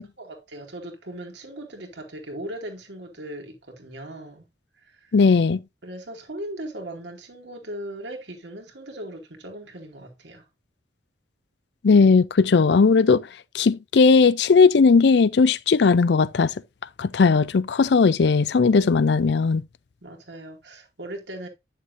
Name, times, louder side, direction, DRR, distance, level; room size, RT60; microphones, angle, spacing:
voice 1, 0.2-4.5 4.8-5.1 5.8-10.4 20.0-21.5, right 1 dB, 80° right, 2.3 m, -38 dB
voice 2, 5.1-5.6 11.8-13.3 13.5-16.5 17.0-19.6, left 4 dB, 70° left, 0.4 m, -17 dB
9.3 x 6.6 x 2.6 m
head